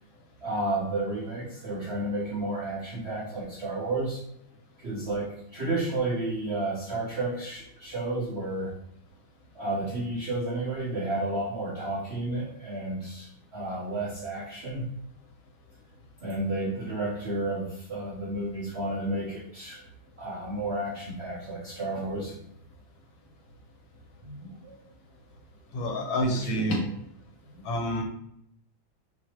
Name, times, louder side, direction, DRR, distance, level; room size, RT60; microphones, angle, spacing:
voice 1, 0.4-4.2 4.8-8.7 9.5-14.9 16.2-19.8 20.2-22.3 24.2-24.8 26.3-26.6 27.5-27.6, right 2 dB, 50° right, -6 dB, 0.7 m, -32 dB
voice 2, 25.7-26.8 27.6-28.0, equal, 80° left, 1 dB, 1.7 m, -27 dB
6.1 x 2.7 x 2.9 m, 0.74 s
omnidirectional pair, 2.2 m